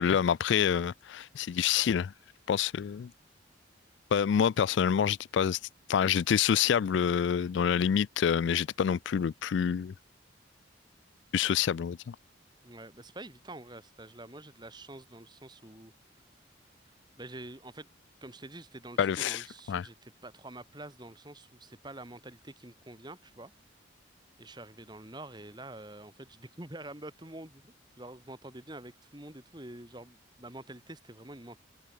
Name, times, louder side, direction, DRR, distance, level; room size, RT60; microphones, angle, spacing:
voice 1, 0.0-2.1 2.5-3.1 4.1-5.6 5.9-9.9 11.3-12.2 19.0-19.4 19.7-19.9, left 8 dB, 70° left, 0.3 m, -27 dB
voice 2, 12.6-15.9 16.8-17.9 18.2-23.5 24.4-31.6, right 1 dB, 20° right, 2.8 m, -47 dB
open air
head